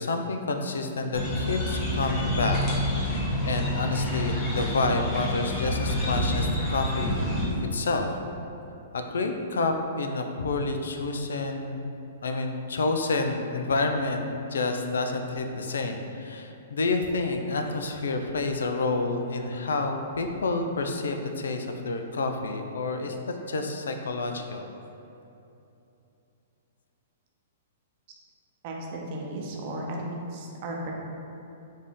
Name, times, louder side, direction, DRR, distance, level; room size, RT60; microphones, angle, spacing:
voice 1, 0.0-2.6 3.0-7.3 7.7-8.2 8.9-11.9 12.2-24.7, left 3 dB, 75° left, 5 dB, 0.4 m, -29 dB
sound 1, 1.1-7.5, left 1 dB, 25° left, 1.2 m, -28 dB
voice 2, 28.6-30.9, right 1 dB, 45° right, -1 dB, 0.7 m, -35 dB
4.9 x 2.6 x 3.6 m, 2.8 s
hypercardioid pair, 115°, 0 cm